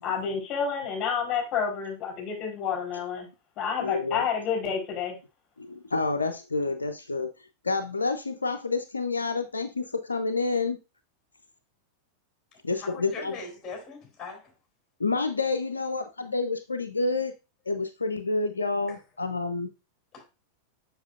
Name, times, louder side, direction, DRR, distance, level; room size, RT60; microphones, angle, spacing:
voice 1, 0.0-3.3 3.6-5.2, left 6 dB, 35° left, 4.2 m, -29 dB
voice 2, 3.8-4.3 5.6-7.3 7.6-10.8 12.6-13.3 15.0-17.3 17.7-19.7, left 3 dB, 75° left, 0.4 m, -28 dB
voice 3, 12.7-14.5 18.9-19.0 20.1-20.2, left 3 dB, 15° left, 3.9 m, -41 dB
7.2 x 5.9 x 2.5 m
figure-of-eight pair, 90°, 0 cm